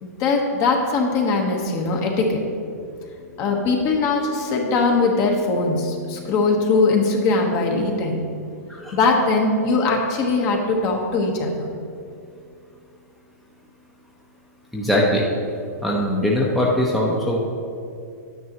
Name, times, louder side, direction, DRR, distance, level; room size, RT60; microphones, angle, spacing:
voice 1, 0.0-2.4 3.4-8.2 8.9-11.7, left 3 dB, 35° left, 1 dB, 1.3 m, -21 dB
voice 2, 14.7-15.2 15.8-17.4, left 1 dB, ahead, -5 dB, 0.9 m, -21 dB
9.9 x 9.4 x 3.0 m, 2.5 s
hypercardioid pair, 145°, 9 cm